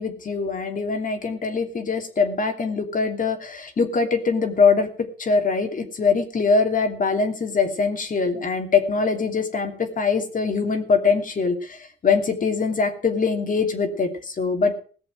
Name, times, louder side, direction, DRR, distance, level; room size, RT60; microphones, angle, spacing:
voice 1, 0.0-4.9 5.2-14.7, left 4 dB, 45° left, 4 dB, 2.8 m, -23 dB
17.5 x 6.7 x 7.7 m, 0.43 s
cardioid pair, 90°, 20 cm